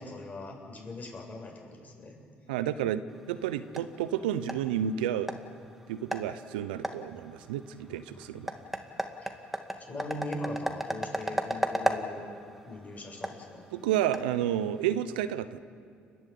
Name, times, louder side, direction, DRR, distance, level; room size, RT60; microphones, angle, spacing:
voice 1, 0.0-2.2 7.9-8.4 9.2-9.3 9.9-12.3 12.7-13.7, left 1 dB, 30° left, 0 dB, 7.6 m, -40 dB
voice 2, 2.5-5.3 5.9-8.5 13.7-15.6, right 10 dB, 85° right, 13 dB, 0.8 m, -31 dB
sound 1, 3.1-14.9, equal, 5° right, 2.3 m, -37 dB
30.0 x 12.0 x 8.5 m, 2.4 s
hypercardioid pair, 55°, 5 cm